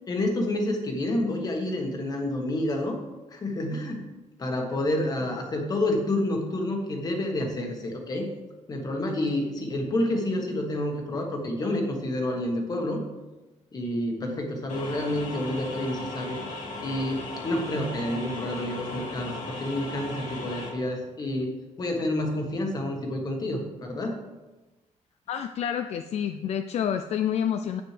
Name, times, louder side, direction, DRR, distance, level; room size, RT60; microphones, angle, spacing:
voice 1, 0.1-3.0 3.3-4.0 4.4-8.3 8.7-13.0 13.7-16.4 16.8-21.5 21.8-24.2, left 1 dB, 30° left, 3 dB, 1.3 m, -29 dB
sound 1, 14.7-20.7, left 2 dB, 80° left, 2.1 m, -37 dB
voice 2, 25.3-27.8, left 9 dB, 60° left, 8 dB, 0.4 m, -28 dB
9.6 x 8.0 x 3.3 m, 1.1 s
wide cardioid pair, 175°, 13 cm